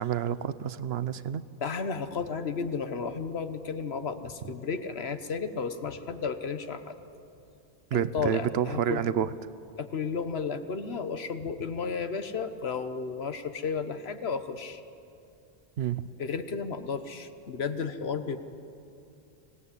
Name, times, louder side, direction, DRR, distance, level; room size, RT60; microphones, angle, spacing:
voice 1, 0.0-1.4 7.9-9.3 15.8-16.0, right 9 dB, 75° right, 15 dB, 1.0 m, -29 dB
voice 2, 1.6-7.0 7.9-9.0 9.8-14.8 16.2-18.4, left 5 dB, 80° left, 9 dB, 1.4 m, -33 dB
25.0 x 17.5 x 8.5 m, 2.7 s
omnidirectional pair, 1.1 m